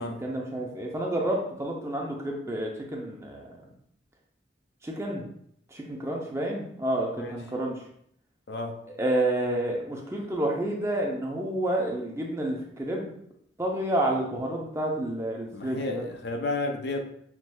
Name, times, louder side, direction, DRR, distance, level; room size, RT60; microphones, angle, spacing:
voice 1, 0.0-3.6 4.8-5.2 5.7-7.8 9.0-13.1 13.6-16.1, right 1 dB, 15° right, -1 dB, 0.6 m, -29 dB
voice 2, 8.5-8.8 15.5-17.1, left 2 dB, 70° left, 5 dB, 0.5 m, -32 dB
5.8 x 3.1 x 2.3 m, 0.69 s
head